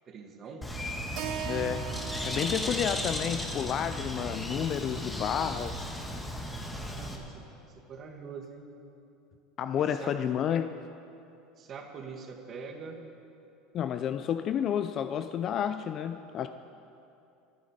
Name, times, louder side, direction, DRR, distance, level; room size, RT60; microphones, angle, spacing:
voice 1, 0.1-0.7 6.7-7.5 7.7-8.7 9.8-10.5 11.6-13.0, right 5 dB, 35° right, 3 dB, 1.9 m, -44 dB
Bird, 0.6-7.2, left 1 dB, 10° left, 1.8 m, -35 dB
Keyboard (musical), 1.2-5.4, right 8 dB, 60° right, 1.0 m, -42 dB
voice 2, 1.4-1.9 2.2-5.8 9.6-10.7 13.7-16.5, left 9 dB, 40° left, 10 dB, 0.5 m, -30 dB
25.5 x 9.4 x 5.1 m, 2.7 s
supercardioid pair, 120°, 0 cm